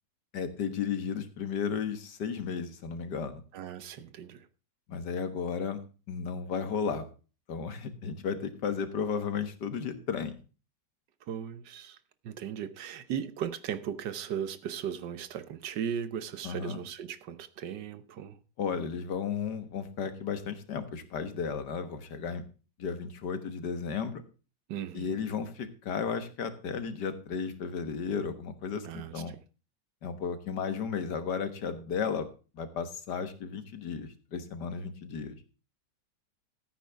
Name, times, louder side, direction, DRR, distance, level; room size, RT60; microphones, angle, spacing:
voice 1, 0.3-3.4 4.9-5.8 6.1-7.1 7.5-10.4 16.4-16.8 18.6-22.5 22.8-24.2 24.9-29.3 30.0-32.3 32.5-35.4, left 6 dB, 70° left, 1.9 m, -34 dB
voice 2, 3.5-4.5 11.2-12.0 12.2-18.4 24.7-25.2 28.8-29.4, right 8 dB, 75° right, 1.5 m, -37 dB
14.0 x 9.2 x 3.4 m
omnidirectional pair, 1.9 m